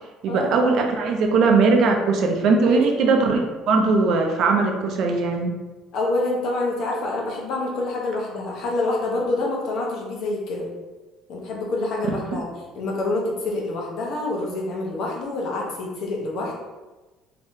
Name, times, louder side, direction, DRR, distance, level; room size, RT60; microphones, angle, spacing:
voice 1, 0.2-5.5 12.3-12.4, right 4 dB, 55° right, 3 dB, 0.5 m, -20 dB
voice 2, 5.9-10.7 11.3-12.5 12.7-16.6, left 2 dB, 60° left, -1 dB, 0.8 m, -26 dB
3.5 x 2.8 x 2.7 m, 1.2 s
cardioid pair, 140°, 0 cm